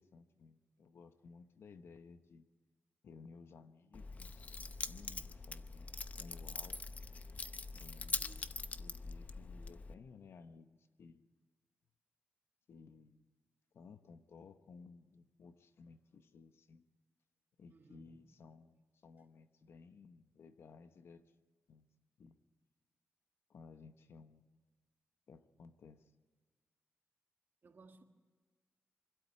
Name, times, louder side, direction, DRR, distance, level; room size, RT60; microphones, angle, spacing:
voice 1, 0.0-2.5 3.0-6.8 7.7-8.4 8.8-11.3 12.7-13.3 13.7-16.9 17.6-21.3 21.7-21.9 22.2-22.4 23.5-24.6 25.3-26.1, left 5 dB, 70° left, 1.0 m, -58 dB
Keys jangling, 3.9-9.9, left 4 dB, 35° left, 0.7 m, -43 dB
voice 2, 8.0-8.5 17.7-18.3 27.6-28.0, right 4 dB, 50° right, 1.8 m, -61 dB
24.5 x 12.5 x 8.5 m
wide cardioid pair, 120°, 4 cm